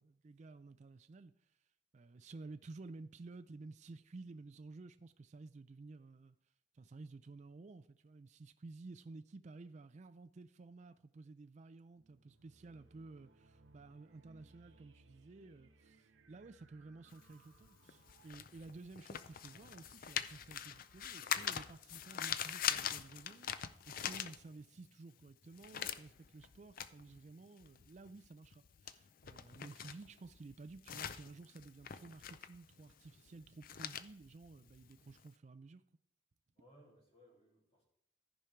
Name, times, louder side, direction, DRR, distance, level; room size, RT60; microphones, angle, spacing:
voice 1, 0.0-1.3 1.9-6.4 6.7-35.8, right 3 dB, 40° right, 0.4 m, -54 dB
sound 1, 12.0-22.2, right 2 dB, 85° right, 0.8 m, -68 dB
sound 2, 17.1-24.9 25.2-35.3, left 9 dB, 50° left, 0.4 m, -43 dB
voice 2, 36.5-37.8, equal, 35° left, 2.7 m, -64 dB
14.0 x 5.1 x 4.4 m
head